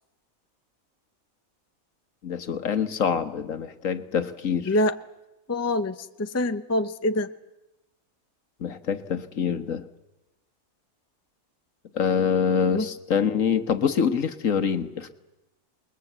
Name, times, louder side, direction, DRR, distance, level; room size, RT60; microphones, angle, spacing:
voice 1, 2.2-4.7 8.6-9.8 11.9-15.1, left 7 dB, 65° left, 10 dB, 1.7 m, -25 dB
voice 2, 4.6-5.0 5.5-7.3 12.7-12.9, left 1 dB, 15° left, 10 dB, 0.6 m, -25 dB
28.0 x 21.0 x 8.1 m, 0.97 s
omnidirectional pair, 1.5 m